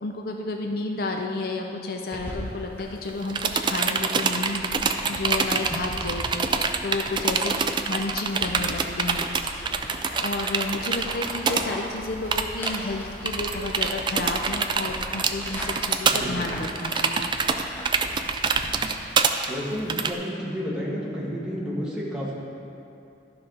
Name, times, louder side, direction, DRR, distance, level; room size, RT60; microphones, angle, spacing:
voice 1, 0.0-6.5 6.8-7.6 7.9-17.3, left 2 dB, 55° left, 2 dB, 0.5 m, -31 dB
sound 1, 2.1-18.7, equal, 10° left, 1.2 m, -39 dB
sound 2, 3.1-11.7 12.0-12.1 12.3-12.8 13.3-20.1, right 5 dB, 25° right, 0.3 m, -25 dB
voice 2, 16.1-16.5 19.5-22.3, equal, 5° right, -6 dB, 1.5 m, -31 dB
12.5 x 5.7 x 3.9 m, 2.6 s
head